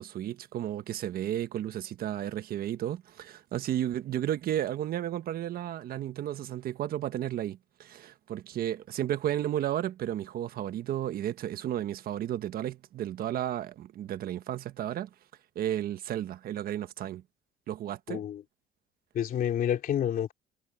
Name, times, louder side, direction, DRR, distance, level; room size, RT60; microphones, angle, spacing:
voice 1, 0.0-15.1 15.5-17.2 17.7-18.2, right 11 dB, 60° right, 1.3 m, -33 dB
voice 2, 18.1-18.4 19.1-20.3, left 10 dB, 55° left, 3.2 m, -29 dB
cardioid pair, 110°, 17 cm